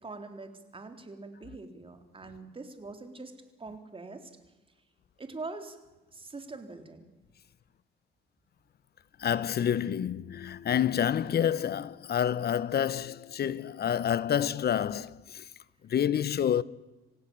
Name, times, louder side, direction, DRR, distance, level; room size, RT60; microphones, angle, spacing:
voice 1, 0.0-4.3 5.2-5.8 6.1-7.0, right 3 dB, 25° right, 3.7 m, -43 dB
voice 2, 9.2-15.4 15.8-16.6, left 9 dB, 55° left, 0.9 m, -28 dB
27.0 x 16.0 x 8.8 m
cardioid pair, 90°, 20 cm